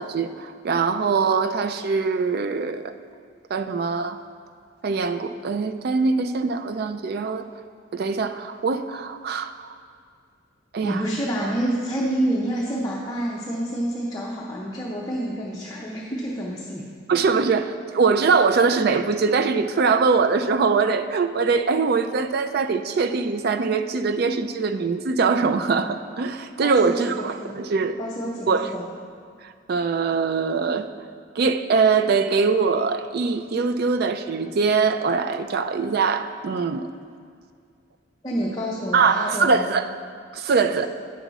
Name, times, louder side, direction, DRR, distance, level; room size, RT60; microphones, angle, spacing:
voice 1, 0.0-2.9 3.5-4.2 4.8-7.5 7.9-9.8 10.7-11.0 11.4-11.5 17.1-28.0 28.5-28.7 29.4-30.9 31.4-36.9 38.9-39.9 40.3-40.9, right 4 dB, 50° right, 9 dB, 0.3 m, -22 dB
voice 2, 10.8-16.9 26.6-27.0 27.3-27.5 28.0-28.8 38.2-39.7, right 1 dB, 20° left, -4 dB, 0.6 m, -28 dB
8.9 x 6.0 x 4.0 m, 2.2 s
head